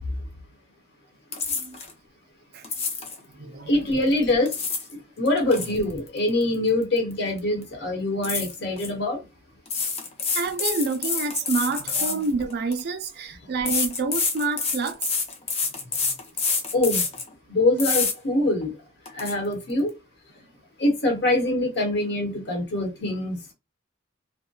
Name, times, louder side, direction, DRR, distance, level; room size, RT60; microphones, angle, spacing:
sound 1, 1.3-1.9 2.6-3.2 4.2-4.9 5.3-7.1 7.4-7.6 8.2-8.9 9.7-12.8 13.7-17.3 17.8-18.1 18.6-18.7 19.1-19.3, left 5 dB, 30° left, 0.5 m, -27 dB
voice 1, 1.3-1.8 2.5-2.7 3.3-3.7 10.3-15.1, right 4 dB, 55° right, 0.4 m, -28 dB
voice 2, 3.7-4.5 5.2-9.2 16.7-17.0 17.5-18.7 19.1-19.9 20.8-23.5, left 1 dB, 55° left, 1.0 m, -24 dB
2.6 x 2.1 x 2.3 m
head